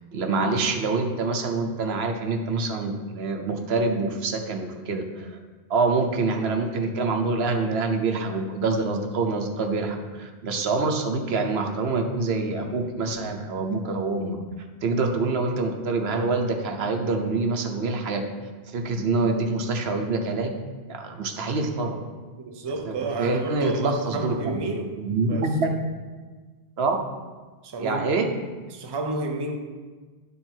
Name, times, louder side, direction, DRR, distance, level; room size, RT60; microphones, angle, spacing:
voice 1, 0.1-5.4 5.7-14.4 14.8-18.2 18.7-20.5 20.9-22.0 22.9-24.6 25.0-25.7 26.8-27.0 27.8-28.2, right 3 dB, 80° right, 3 dB, 1.0 m, -26 dB
voice 2, 22.4-25.0 25.3-25.6 27.6-28.2 28.7-29.6, right 2 dB, 30° right, 4 dB, 0.5 m, -31 dB
10.5 x 3.6 x 4.4 m, 1.4 s
omnidirectional pair, 1.1 m